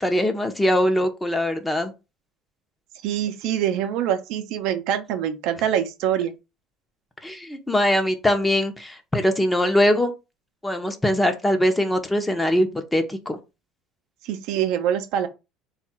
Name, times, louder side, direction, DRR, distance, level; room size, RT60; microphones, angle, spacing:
voice 1, 0.0-1.9 7.2-10.1 10.6-13.4, left 1 dB, 10° left, 0.7 m, -22 dB
voice 2, 3.0-6.3 14.2-15.3, right 10 dB, 75° right, 0.6 m, -24 dB
3.7 x 2.4 x 4.3 m
supercardioid pair, 95°, 0 cm